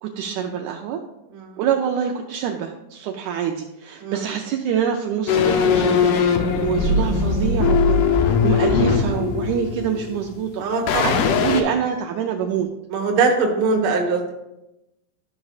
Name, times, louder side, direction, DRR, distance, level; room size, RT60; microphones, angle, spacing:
voice 1, 0.0-1.0 1.6-10.6 10.9-12.7, right 8 dB, 85° right, 3 dB, 1.7 m, -26 dB
sound 1, 5.3-10.5 10.9-11.6, left 5 dB, 75° left, 2.0 m, -20 dB
voice 2, 6.7-7.1 10.6-11.3 12.9-14.3, right 4 dB, 60° right, 1 dB, 1.4 m, -23 dB
12.5 x 5.9 x 2.4 m, 0.92 s
omnidirectional pair, 4.0 m